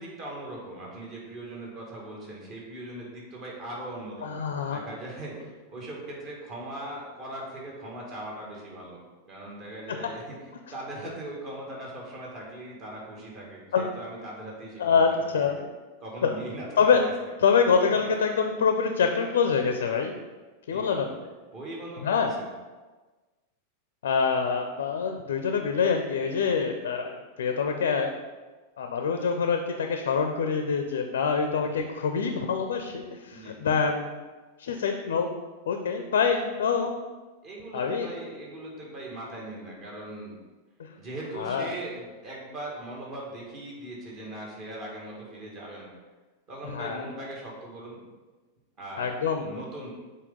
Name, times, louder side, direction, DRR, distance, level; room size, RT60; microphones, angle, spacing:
voice 1, 0.0-9.0 9.3-10.3 10.7-15.0 15.3-15.7 16.0-16.7 20.7-21.2 21.5-22.5 33.3-33.6 37.4-40.4 41.0-45.9 46.5-48.0 48.8-49.1 49.4-49.9, right 1 dB, 35° right, -3 dB, 2.0 m, -40 dB
voice 2, 4.2-4.8 9.9-10.0 13.7-13.8 14.8-15.6 16.2-16.3 16.8-17.0 17.4-20.1 20.7-21.1 22.0-22.3 24.0-28.1 28.8-34.1 34.6-35.3 35.7-37.0 37.7-38.1 40.8-40.9 41.4-41.7 46.6-47.0 49.0-49.5, left 6 dB, 60° left, 5 dB, 0.5 m, -25 dB
7.3 x 4.1 x 3.8 m, 1.3 s
figure-of-eight pair, 90°, 0 cm